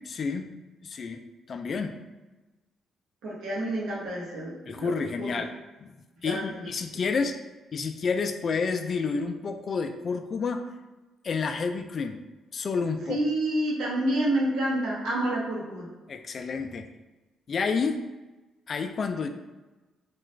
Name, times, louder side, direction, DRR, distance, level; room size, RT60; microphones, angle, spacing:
voice 1, 0.0-0.5 0.8-1.2 1.5-2.0 4.7-5.5 5.8-5.9 6.2-7.3 7.7-10.6 11.2-12.2 12.5-13.2 16.1-16.9 17.5-18.0 18.7-19.3, left 5 dB, 50° left, 6 dB, 0.3 m, -29 dB
voice 2, 3.2-5.3 6.2-6.7 13.1-15.9, right 1 dB, 85° right, -5 dB, 1.0 m, -29 dB
3.0 x 2.3 x 3.2 m, 1.2 s
cardioid pair, 90°, 0 cm